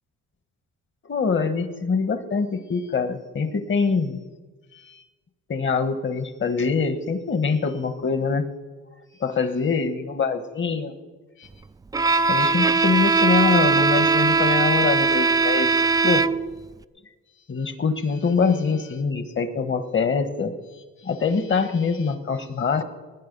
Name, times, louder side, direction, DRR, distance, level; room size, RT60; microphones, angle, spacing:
voice 1, 1.1-4.2 4.8-5.0 5.5-8.5 9.2-11.0 11.4-11.5 12.1-16.3 17.5-20.5 21.0-22.8, left 5 dB, 40° left, 11 dB, 1.5 m, -24 dB
Bowed string instrument, 11.9-16.6, right 4 dB, 15° right, 0.4 m, -20 dB
19.5 x 9.7 x 5.5 m, 1.3 s
cardioid pair, 90°, 30 cm